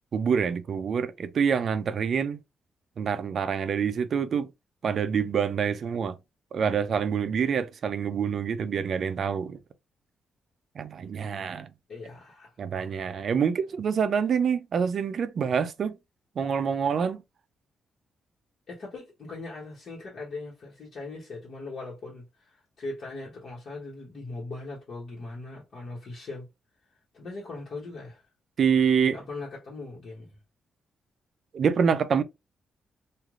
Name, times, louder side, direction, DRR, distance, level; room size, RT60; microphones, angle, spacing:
voice 1, 0.1-2.4 3.0-4.5 4.8-6.2 6.5-9.6 10.8-11.7 12.6-16.0 16.4-17.2 28.6-29.2 31.5-32.2, right 6 dB, 50° right, 0.4 m, -26 dB
voice 2, 11.9-12.5 18.7-26.5 27.1-28.2 29.1-30.4, left 3 dB, 45° left, 1.1 m, -40 dB
3.2 x 2.4 x 2.4 m
wide cardioid pair, 160°, 0 cm